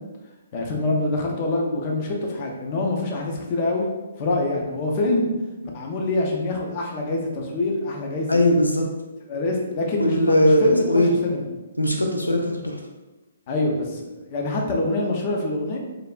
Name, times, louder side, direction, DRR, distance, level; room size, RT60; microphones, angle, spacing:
voice 1, 0.5-3.9 4.2-5.3 5.7-8.4 9.3-11.4 13.5-15.8, left 2 dB, 35° left, 0 dB, 0.5 m, -25 dB
voice 2, 8.3-8.9 10.0-11.1 11.8-12.8, left 1 dB, 85° left, 1 dB, 0.4 m, -19 dB
3.3 x 2.4 x 2.3 m, 1.1 s
figure-of-eight pair, 125°, 0 cm